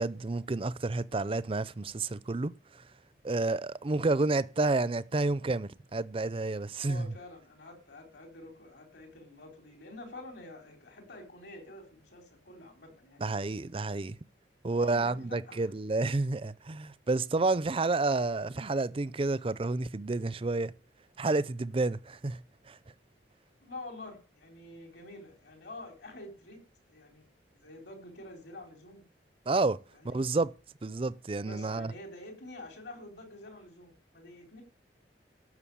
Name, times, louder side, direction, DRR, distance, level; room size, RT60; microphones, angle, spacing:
voice 1, 0.0-2.5 3.2-7.1 13.2-14.2 14.6-20.7 21.2-22.4 22.7-22.8 29.5-29.8 30.0-30.5 30.8-31.9, right 3 dB, 30° right, 0.5 m, -30 dB
voice 2, 6.8-13.2 14.7-15.7 23.6-26.6 26.9-27.3 27.5-29.0 29.9-30.2 31.5-34.6, left 2 dB, 70° left, 4.1 m, -48 dB
12.5 x 6.4 x 8.5 m
head